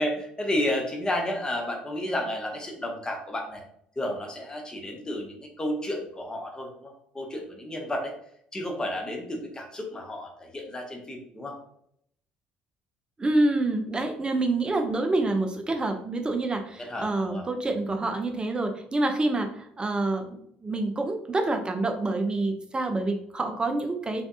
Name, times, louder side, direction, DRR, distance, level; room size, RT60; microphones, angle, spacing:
voice 1, 0.0-3.6 4.0-8.1 8.5-11.6 16.8-17.4, left 1 dB, 15° left, 1 dB, 0.7 m, -32 dB
voice 2, 13.2-24.2, right 2 dB, 20° right, 5 dB, 0.5 m, -27 dB
3.5 x 2.6 x 2.4 m, 0.69 s
figure-of-eight pair, 55°, 5 cm